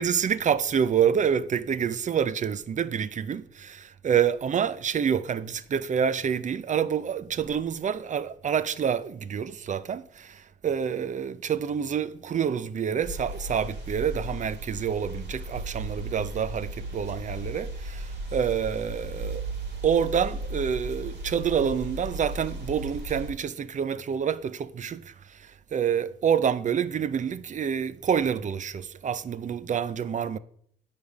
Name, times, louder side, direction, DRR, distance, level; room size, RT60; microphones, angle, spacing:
voice 1, 0.0-19.5 19.8-30.4, right 7 dB, 40° right, 0.5 m, -27 dB
sound 1, 13.0-23.3, right 2 dB, 55° right, 2.1 m, -36 dB
9.3 x 3.5 x 6.3 m
cardioid pair, 90°, 20 cm